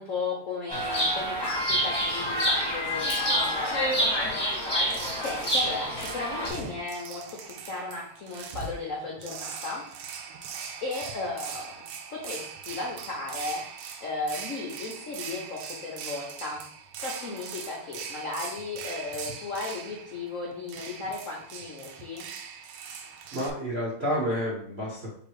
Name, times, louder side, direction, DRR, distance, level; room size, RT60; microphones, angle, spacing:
voice 1, 0.0-9.8 10.8-11.7 12.1-22.3, left 3 dB, 70° left, -2 dB, 0.7 m, -35 dB
Chirp tweet, 0.7-6.5, equal, 15° left, 1.2 m, -27 dB
sound 1, 4.9-23.5, right 6 dB, 85° right, 1.5 m, -41 dB
voice 2, 23.3-25.1, equal, 40° right, -5 dB, 0.9 m, -30 dB
3.7 x 3.0 x 4.6 m, 0.64 s
omnidirectional pair, 2.4 m